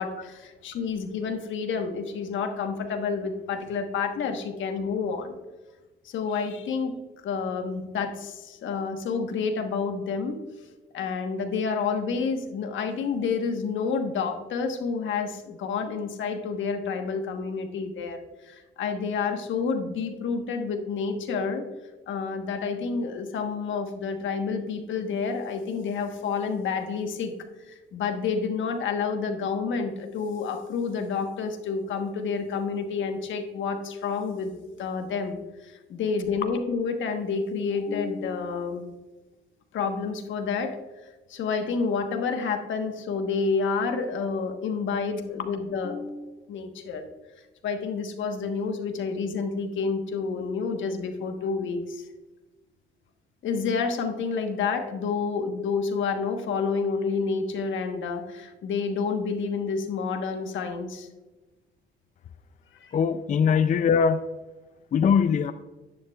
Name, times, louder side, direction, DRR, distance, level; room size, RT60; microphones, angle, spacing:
voice 1, 0.0-5.4 6.0-10.4 10.9-21.7 22.1-27.3 27.6-39.0 39.7-40.8 41.3-46.2 46.5-47.0 47.6-52.1 53.4-61.1 62.7-62.9, left 5 dB, 75° left, 6 dB, 1.2 m, -29 dB
voice 2, 62.9-64.2 64.9-65.5, left 6 dB, 40° left, 11 dB, 0.4 m, -21 dB
11.0 x 9.8 x 2.4 m, 1.2 s
cardioid pair, 90°, 20 cm